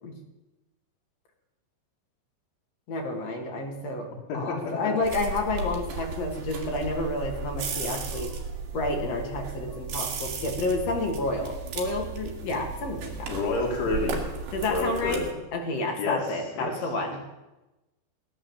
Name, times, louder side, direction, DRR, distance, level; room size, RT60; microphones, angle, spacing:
voice 1, 2.9-8.3 8.7-13.3 14.5-15.3 15.5-17.5, left 2 dB, 40° left, 2 dB, 2.9 m, -30 dB
sound 1, 5.0-15.3, right 4 dB, 60° right, 3.8 m, -35 dB
voice 2, 13.3-14.3 14.7-15.4 16.0-16.2 16.6-16.7, left 3 dB, 75° left, -2 dB, 5.0 m, -28 dB
18.5 x 10.5 x 7.4 m, 1.1 s
omnidirectional pair, 5.4 m